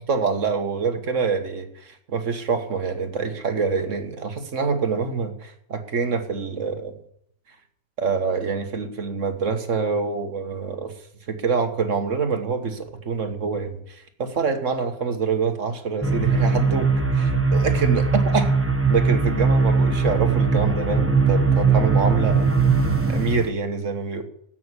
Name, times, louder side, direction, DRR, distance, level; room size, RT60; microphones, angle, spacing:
voice 1, 0.0-7.0 8.0-10.9 11.3-18.5 18.9-22.5 23.1-24.2, right 5 dB, 60° right, 6 dB, 1.8 m, -26 dB
sound 1, 16.0-23.5, right 4 dB, 10° right, 0.8 m, -20 dB
15.0 x 6.3 x 8.2 m, 0.69 s
omnidirectional pair, 1.5 m